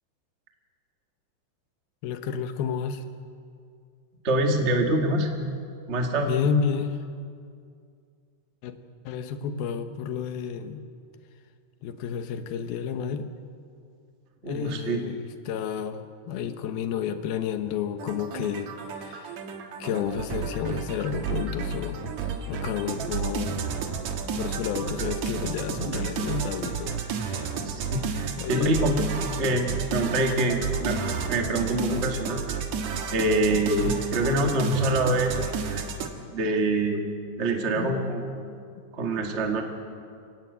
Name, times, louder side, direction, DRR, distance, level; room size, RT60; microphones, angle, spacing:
voice 1, 2.0-3.1 6.2-7.0 8.6-8.8 9.0-10.9 11.8-13.3 14.4-18.7 19.0-19.4 19.8-22.0 22.5-23.6 24.3-27.5 28.4-28.8 33.8-34.1 37.8-38.1 38.8-38.9, left 7 dB, 90° left, 8 dB, 3.1 m, -31 dB
voice 2, 4.2-5.3 5.9-6.3 14.4-15.0 27.6-29.0 29.4-32.4 33.1-35.4 35.7-35.9 36.3-37.1 37.4-38.6 38.9-39.6, right 1 dB, 30° right, 2 dB, 1.4 m, -25 dB
sound 1, 18.0-36.1, right 6 dB, 60° right, 2.5 m, -31 dB
26.5 x 17.0 x 8.2 m, 2.3 s
omnidirectional pair, 4.2 m